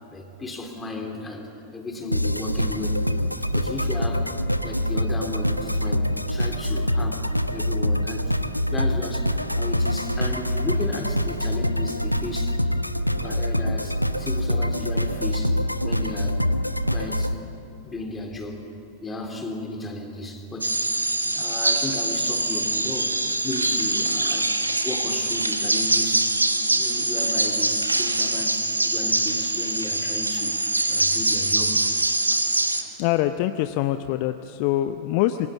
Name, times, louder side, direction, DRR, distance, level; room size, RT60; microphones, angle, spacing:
voice 1, 0.1-3.0 3.5-8.3 8.7-12.6 13.1-15.6 15.8-16.4 16.9-17.4 17.8-18.6 19.0-20.9 21.2-26.3 26.7-30.6 30.9-31.8, left 2 dB, 15° left, 3 dB, 3.7 m, -34 dB
sound 1, 2.1-17.4, equal, 90° left, 0.8 m, -25 dB
sound 2, 20.6-32.8, right 2 dB, 85° right, 1.5 m, -24 dB
voice 2, 33.0-35.5, left 14 dB, 45° left, 10 dB, 0.7 m, -24 dB
27.0 x 23.0 x 8.3 m, 2.7 s
figure-of-eight pair, 90°, 0 cm